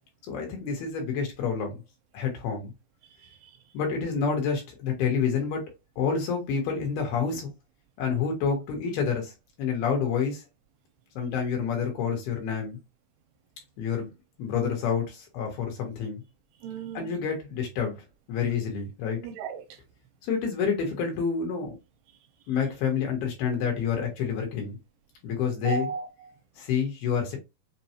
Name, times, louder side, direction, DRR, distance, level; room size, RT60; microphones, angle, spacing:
voice 1, 0.3-1.8 2.1-2.7 3.7-5.7 6.0-7.5 8.0-10.4 11.1-12.8 13.8-14.1 14.4-16.2 16.9-18.0 18.3-19.2 20.2-21.8 22.5-24.8 25.2-25.9 26.6-27.4, left 6 dB, 75° left, 3.3 m, -28 dB
voice 2, 3.2-3.6 16.6-17.2 19.2-19.8 25.6-26.4, right 6 dB, 85° right, 2.6 m, -36 dB
6.8 x 2.3 x 2.9 m
omnidirectional pair, 4.6 m